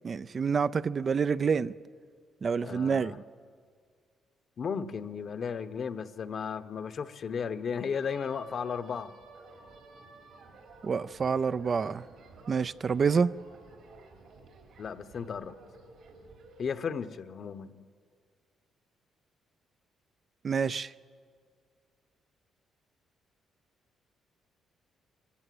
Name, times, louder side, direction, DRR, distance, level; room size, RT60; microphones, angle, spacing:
voice 1, 0.0-1.7 2.4-3.2 10.8-12.0 12.5-13.3 20.4-20.9, right 5 dB, 45° right, 0.5 m, -27 dB
voice 2, 2.6-3.2 4.6-9.1 14.8-15.6 16.6-17.8, left 6 dB, 50° left, 1.0 m, -35 dB
sound 1, 7.9-16.7, right 3 dB, 70° right, 3.9 m, -53 dB
23.0 x 16.0 x 7.8 m
cardioid pair, 90°, 0 cm